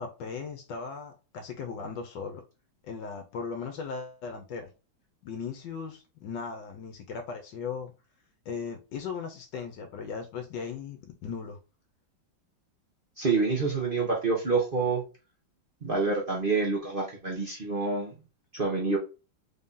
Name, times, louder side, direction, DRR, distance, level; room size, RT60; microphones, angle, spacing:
voice 1, 0.0-2.4 2.9-4.7 5.2-7.9 8.4-11.6, left 5 dB, 70° left, 1.3 m, -37 dB
voice 2, 13.2-15.0 15.8-18.1 18.5-19.0, right 4 dB, 35° right, 0.9 m, -27 dB
3.9 x 2.8 x 3.7 m
omnidirectional pair, 2.1 m